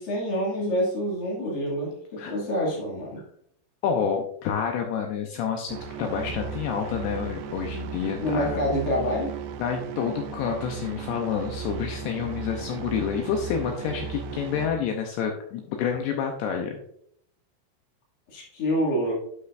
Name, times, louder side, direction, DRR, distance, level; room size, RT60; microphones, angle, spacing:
voice 1, 0.0-3.2 8.2-9.4 18.3-19.1, equal, 55° left, -4 dB, 3.5 m, -27 dB
voice 2, 3.8-8.6 9.6-16.8, left 7 dB, 90° left, 3 dB, 2.4 m, -28 dB
sound 1, 5.7-14.7, right 6 dB, 85° right, 2.3 m, -36 dB
11.0 x 5.6 x 2.5 m, 0.70 s
omnidirectional pair, 5.5 m